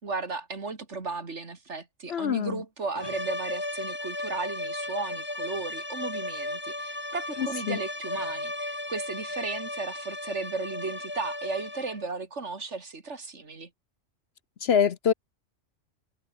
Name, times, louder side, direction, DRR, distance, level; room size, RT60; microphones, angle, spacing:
voice 1, 0.0-13.7, right 4 dB, 60° right, 2.7 m, -35 dB
voice 2, 2.1-2.6 7.4-7.8 14.6-15.1, left 7 dB, 55° left, 0.9 m, -25 dB
sound 1, 2.9-12.1, left 1 dB, 20° left, 2.5 m, -35 dB
omnidirectional pair, 1.3 m